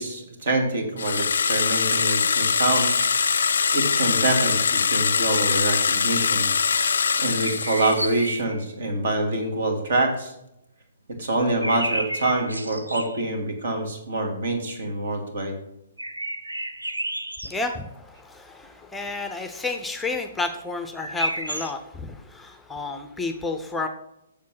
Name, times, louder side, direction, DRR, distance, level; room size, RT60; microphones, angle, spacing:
voice 1, 0.0-3.0 3.7-6.5 7.2-10.3 11.1-15.5, right 2 dB, 55° right, 4 dB, 2.2 m, -25 dB
sound 1, 1.0-8.3, left 6 dB, 60° left, 0.4 m, -23 dB
sound 2, 2.7-3.4 7.4-8.6 11.4-13.3 16.0-17.6 21.0-21.7, right 1 dB, 80° right, 0.8 m, -31 dB
voice 2, 17.4-23.9, left 3 dB, 5° left, 7 dB, 0.6 m, -31 dB
7.4 x 7.1 x 5.8 m, 0.83 s
figure-of-eight pair, 125°, 0 cm